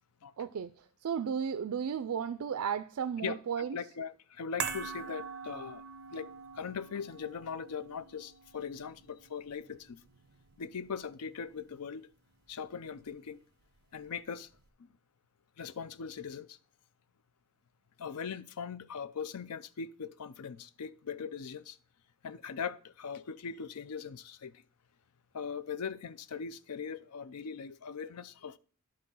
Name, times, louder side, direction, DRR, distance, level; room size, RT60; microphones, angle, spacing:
voice 1, 0.4-0.7 1.0-3.8, right 7 dB, 70° right, 0.4 m, -34 dB
voice 2, 3.2-5.8 6.1-10.0 10.6-12.1 12.5-13.4 13.9-14.5 14.8-14.9 15.6-16.6 18.0-21.8 22.2-24.6 25.3-28.6, left 6 dB, 85° left, 0.5 m, -40 dB
sound 1, 4.6-11.0 11.3-11.4, right 6 dB, 50° right, 0.9 m, -43 dB
10.5 x 3.9 x 5.5 m
head